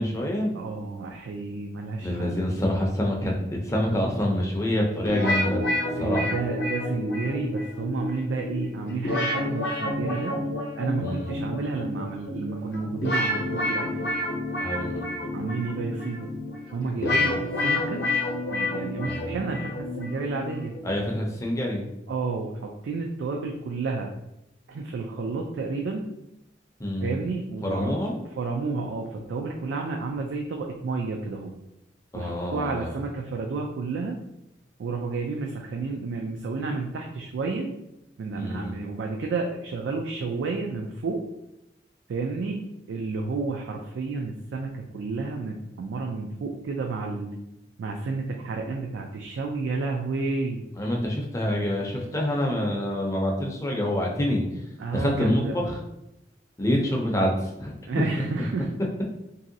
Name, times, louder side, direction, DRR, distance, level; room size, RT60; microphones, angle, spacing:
voice 1, 0.0-0.5 2.0-5.6 6.0-6.4 11.0-11.3 14.6-15.1 17.0-17.4 19.0-19.4 20.8-21.9 26.8-27.2 27.6-28.2 32.1-32.9 38.4-38.8 50.8-54.5 54.9-55.8 56.6-57.7, left 1 dB, 15° left, -1 dB, 0.4 m, -26 dB
voice 2, 0.5-2.5 6.0-10.4 10.8-14.1 15.3-16.3 16.7-18.0 18.5-20.8 22.1-24.2 24.7-26.1 27.0-28.1 28.4-31.5 32.1-34.2 34.8-37.7 38.2-41.2 42.1-47.3 47.8-50.7 54.8-55.6 57.9-58.7, right 3 dB, 85° right, 1 dB, 0.3 m, -31 dB
sound 1, 5.0-21.0, left 1 dB, 65° left, 0.7 m, -29 dB
3.0 x 2.6 x 2.6 m, 0.87 s
head